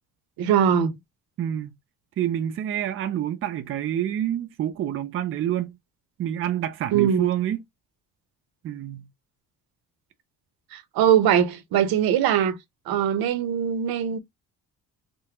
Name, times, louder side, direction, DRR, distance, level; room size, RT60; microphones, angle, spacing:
voice 1, 0.4-0.9 6.9-7.3 10.7-12.6 12.9-14.2, right 9 dB, 90° right, 0.8 m, -21 dB
voice 2, 1.4-1.7 2.2-5.8 6.2-7.6 8.6-9.1, right 11 dB, 40° right, 0.4 m, -27 dB
3.6 x 2.1 x 2.9 m
cardioid pair, 165°, 36 cm